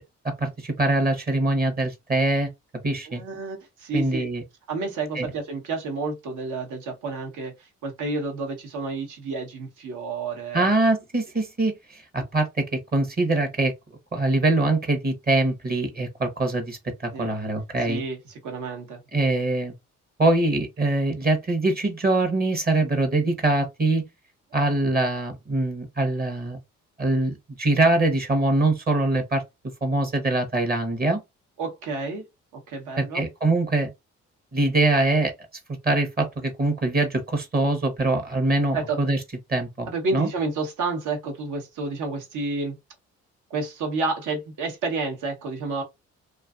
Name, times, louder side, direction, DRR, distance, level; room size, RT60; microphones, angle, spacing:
voice 1, 0.4-2.5 2.8-3.2 3.9-4.4 5.1-5.3 10.5-13.7 14.1-18.0 19.1-19.7 20.2-24.0 24.5-26.6 27.0-29.4 29.8-31.2 33.0-33.9 34.5-35.3 35.8-39.2 39.5-39.9 40.1-40.3, right 2 dB, 30° right, 0.8 m, -23 dB
voice 2, 3.1-4.3 4.7-10.7 17.1-17.3 17.9-19.0 31.6-32.2 32.5-33.2 38.7-39.0 39.9-42.8 43.5-45.8, right 3 dB, 80° right, 1.1 m, -30 dB
2.5 x 2.4 x 2.4 m
cardioid pair, 90°, 30 cm